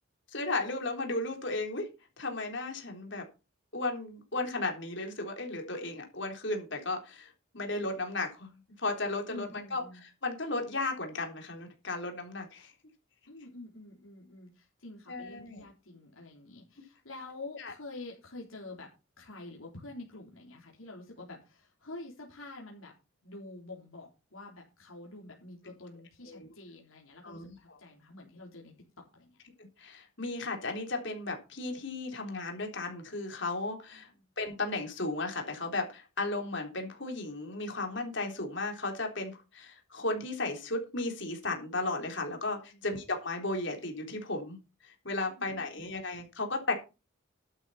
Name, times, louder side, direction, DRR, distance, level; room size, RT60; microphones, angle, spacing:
voice 1, 0.3-1.9 2.2-3.2 3.7-9.8 10.2-12.7 15.1-15.6 17.6-17.7 26.2-26.5 27.2-27.5 29.8-34.1 34.4-46.7, left 2 dB, 60° left, 3 dB, 3.8 m, -35 dB
voice 2, 9.3-10.0 13.3-18.9 19.2-22.9 23.2-28.7 29.1-29.4 33.9-34.3 42.7-42.9 45.3-45.9, left 2 dB, 80° left, -2 dB, 3.8 m, -47 dB
12.0 x 10.0 x 4.3 m, 0.29 s
head